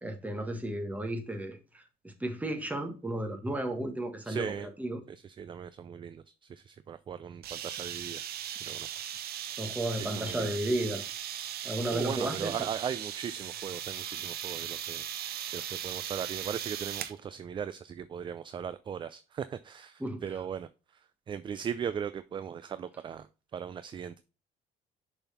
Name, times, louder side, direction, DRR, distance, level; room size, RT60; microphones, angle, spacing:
voice 1, 0.0-4.5 4.8-5.0 9.6-11.0 11.6-12.5 20.0-20.2, right 1 dB, 10° right, 1.4 m, -33 dB
voice 2, 4.2-4.7 5.1-8.9 10.0-10.5 11.5-11.6 11.9-15.1 15.5-23.3 23.5-24.2, right 8 dB, 30° right, 0.3 m, -38 dB
sound 1, 7.4-17.2, right 10 dB, 65° right, 0.9 m, -38 dB
6.7 x 4.1 x 4.2 m
cardioid pair, 110°, 17 cm